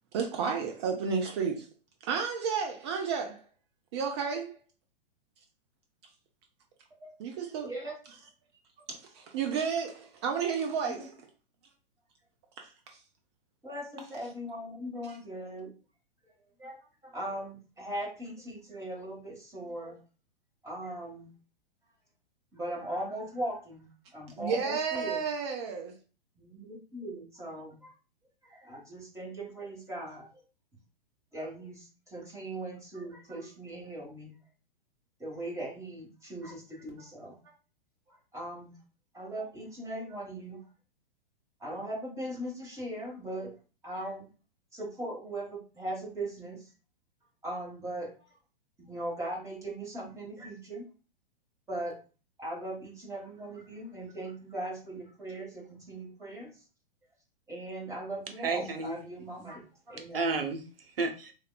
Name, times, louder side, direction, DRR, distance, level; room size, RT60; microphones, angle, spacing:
voice 1, 0.1-1.7 2.1-3.4 3.9-4.6 7.2-7.7 8.9-11.1 12.6-13.0 24.4-25.9, right 6 dB, 30° right, 0.4 m, -32 dB
voice 2, 13.6-15.7 16.2-16.3 16.6-20.0 20.6-21.3 22.5-25.2 26.4-27.9 28.4-30.3 31.3-34.3 35.2-37.4 38.1-38.7 39.1-40.6 41.6-43.5 43.8-44.3 44.7-46.7 47.4-48.3 48.8-50.9 51.7-52.0 52.4-56.5 57.5-60.3, right 1 dB, 10° right, 1.0 m, -39 dB
voice 3, 58.4-59.0 60.0-61.3, right 3 dB, 75° right, 0.7 m, -32 dB
3.4 x 2.2 x 2.2 m
figure-of-eight pair, 110°, 29 cm